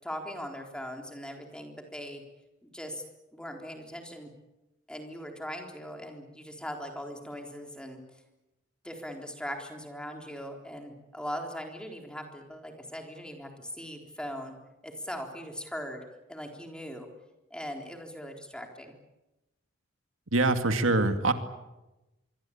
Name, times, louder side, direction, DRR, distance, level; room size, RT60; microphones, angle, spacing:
voice 1, 0.0-2.2 2.6-3.0 3.3-4.3 4.9-8.0 8.8-14.5 14.8-16.0 16.3-17.1 17.5-18.9, equal, 5° left, 3 dB, 3.8 m, -40 dB
voice 2, 20.3-21.3, right 2 dB, 90° right, 7 dB, 2.2 m, -24 dB
25.0 x 23.5 x 8.7 m, 1.0 s
head